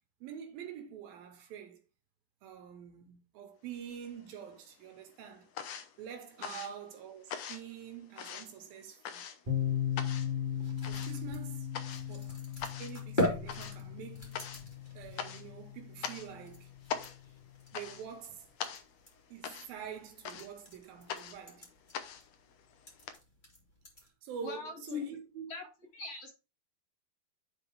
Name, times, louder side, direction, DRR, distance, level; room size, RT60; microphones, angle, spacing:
voice 1, 0.2-1.8 2.4-5.5 6.0-9.2 10.9-11.7 12.1-12.4 12.8-14.4 14.9-16.7 17.7-18.5 19.3-21.7 24.2-25.5, right 8 dB, 80° right, 3.1 m, -46 dB
sound 1, 3.8-4.6 4.9-23.1, left 8 dB, 75° left, 1.5 m, -43 dB
voice 2, 6.4-6.7 24.4-25.0 25.5-25.6 25.9-26.3, left 5 dB, 50° left, 2.4 m, -41 dB
sound 2, 9.5-17.1, left 10 dB, 30° right, 0.9 m, -38 dB
sound 3, 10.5-24.1, left 1 dB, 15° left, 2.0 m, -42 dB
10.5 x 4.1 x 4.7 m
omnidirectional pair, 4.2 m